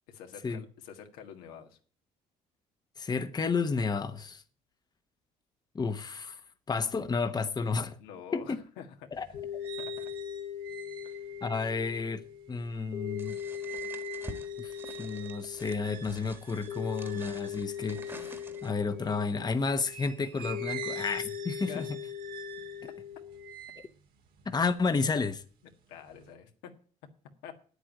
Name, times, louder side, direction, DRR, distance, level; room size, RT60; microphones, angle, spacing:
voice 1, 0.1-1.8 8.0-9.4 9.8-10.1 11.0-11.3 21.6-21.9 25.9-26.8 27.4-27.5, left 8 dB, 85° left, 1.7 m, -47 dB
voice 2, 3.0-4.4 5.7-6.4 6.7-8.0 8.3-8.6 9.1-9.3 11.4-12.2 12.5-13.4 14.6-21.9 24.4-25.4, left 4 dB, 25° left, 1.0 m, -31 dB
sound 1, 9.1-19.3 19.8-25.3 25.7-26.3, right 10 dB, 75° right, 2.2 m, -47 dB
sound 2, 9.3-23.5, left 9 dB, 50° left, 1.4 m, -40 dB
sound 3, 13.2-18.9, right 2 dB, 15° right, 1.6 m, -49 dB
8.9 x 8.2 x 9.0 m
supercardioid pair, 80°, 16 cm